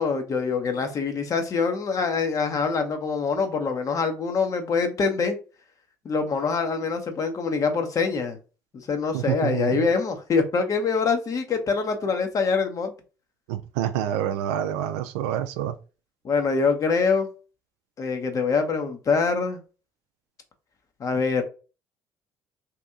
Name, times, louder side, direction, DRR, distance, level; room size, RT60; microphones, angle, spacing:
voice 1, 0.0-5.4 6.0-8.4 8.7-12.9 16.2-17.3 18.0-19.6 21.0-21.4, left 5 dB, 45° left, 0.9 m, -24 dB
voice 2, 9.1-9.9 13.5-15.7, right 11 dB, 75° right, 0.4 m, -27 dB
2.9 x 2.6 x 3.5 m
hypercardioid pair, 55°, 8 cm